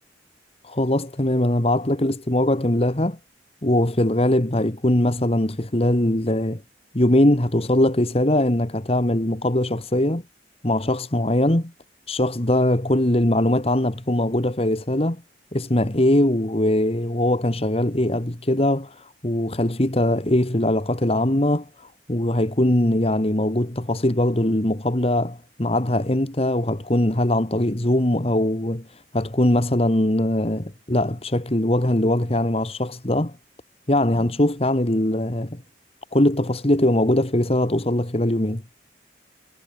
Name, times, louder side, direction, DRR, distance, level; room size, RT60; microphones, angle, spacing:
voice 1, 0.6-3.2 3.6-6.6 6.9-10.2 10.6-11.7 12.1-15.2 15.5-33.4 33.9-35.6 36.1-38.6, left 1 dB, 35° left, 1.8 m, -21 dB
head